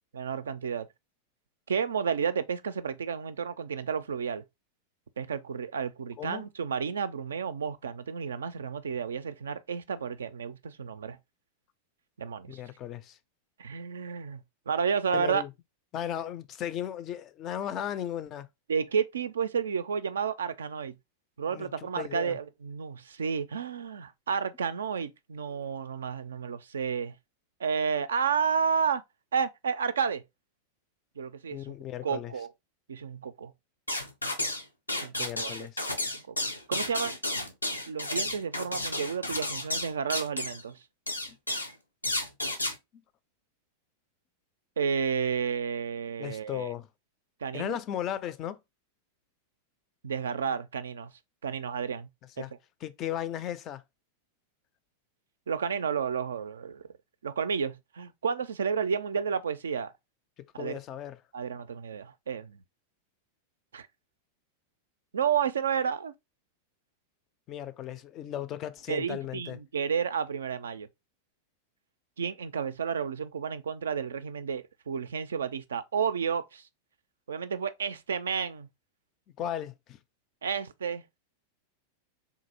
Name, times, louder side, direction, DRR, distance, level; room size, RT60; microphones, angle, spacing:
voice 1, 0.1-0.9 1.7-4.4 5.2-11.2 12.2-12.6 13.6-15.4 18.7-20.9 21.4-27.1 27.6-29.0 29.3-30.2 31.2-31.7 32.0-32.5 32.9-33.5 35.0-35.5 36.1-36.4 36.7-37.2 37.9-40.8 44.8-46.7 47.4-47.8 50.0-51.1 51.4-52.1 52.4-52.5 55.5-56.8 57.2-59.9 60.5-60.8 61.3-62.6 63.7-63.9 65.1-66.1 68.9-70.9 72.2-76.6 77.3-78.7 80.4-81.0, right 6 dB, 65° right, 0.3 m, -31 dB
voice 2, 12.5-13.2 15.1-15.5 15.9-18.5 21.5-21.7 22.0-22.4 31.5-32.3 35.2-35.8 46.2-46.9 47.5-48.6 52.4-52.5 52.8-53.8 60.6-61.2 67.5-69.6 79.4-80.0, left 10 dB, 35° left, 0.3 m, -36 dB
sound 1, 33.9-34.6 34.9-40.6 41.1-41.7 42.0-42.7, left 1 dB, 85° left, 0.6 m, -32 dB
3.7 x 2.6 x 2.7 m
figure-of-eight pair, 90°, 0 cm